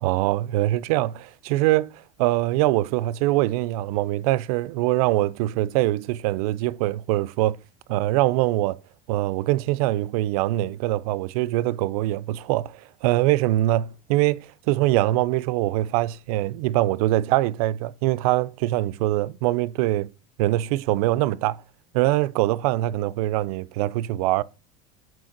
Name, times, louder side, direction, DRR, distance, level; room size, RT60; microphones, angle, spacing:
voice 1, 0.0-7.6 7.9-8.8 9.1-20.1 20.4-21.6 21.9-24.4, right 16 dB, 70° right, 0.5 m, -23 dB
6.4 x 4.5 x 5.8 m
cardioid pair, 170°, 19 cm